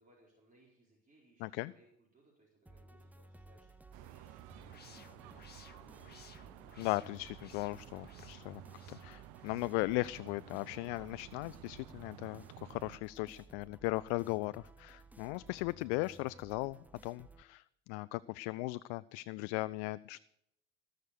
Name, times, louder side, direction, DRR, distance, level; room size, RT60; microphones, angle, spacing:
voice 1, 0.0-6.3, right 1 dB, 25° right, -4 dB, 4.4 m, -67 dB
voice 2, 1.4-1.7 6.8-8.6 8.9-20.2, left 21 dB, 60° left, 18 dB, 0.5 m, -38 dB
sound 1, 2.7-17.4, right 2 dB, 5° right, 0.8 m, -58 dB
sound 2, 3.9-13.0, right 17 dB, 60° right, 0.7 m, -54 dB
sound 3, 4.6-9.8, left 6 dB, 30° left, 1.7 m, -60 dB
19.5 x 6.5 x 6.8 m, 0.79 s
hypercardioid pair, 70°, 35 cm